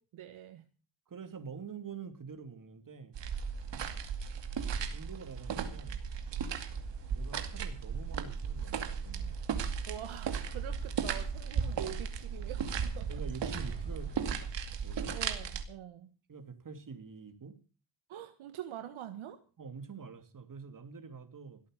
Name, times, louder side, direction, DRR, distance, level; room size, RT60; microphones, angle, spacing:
voice 1, 0.1-0.6 9.9-13.1 15.1-16.1 18.1-19.4, right 10 dB, 75° right, 8 dB, 1.6 m, -45 dB
voice 2, 1.1-3.1 4.9-6.0 7.1-9.4 11.6-11.8 13.1-14.4 14.8-15.2 16.3-17.6 19.6-21.6, right 5 dB, 40° right, 9 dB, 2.9 m, -46 dB
sound 1, 3.1-15.6, right 6 dB, 60° right, 2.4 m, -36 dB
sound 2, 6.3-14.4, left 1 dB, 10° left, 5.4 m, -56 dB
18.0 x 8.6 x 6.6 m, 0.36 s
cardioid pair, 75°, 49 cm